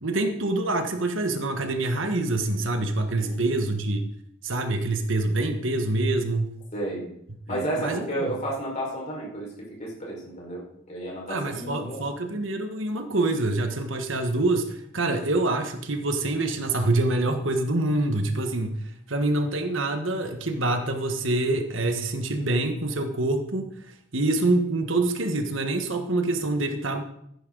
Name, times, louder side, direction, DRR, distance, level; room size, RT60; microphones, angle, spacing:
voice 1, 0.0-4.0 4.4-6.6 7.5-8.3 11.3-27.0, right 2 dB, 65° right, 6 dB, 1.4 m, -26 dB
voice 2, 6.7-7.1 7.5-9.5 9.8-12.0, right 1 dB, 35° left, -3 dB, 4.9 m, -32 dB
15.0 x 9.9 x 3.9 m, 0.74 s
head